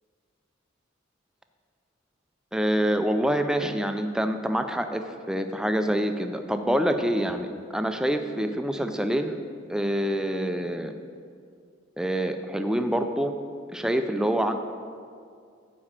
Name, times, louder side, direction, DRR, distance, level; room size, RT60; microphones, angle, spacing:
voice 1, 2.5-9.4 9.7-10.9 12.0-13.4 13.7-14.5, equal, 5° right, 7 dB, 0.4 m, -26 dB
9.7 x 4.3 x 7.3 m, 2.3 s
head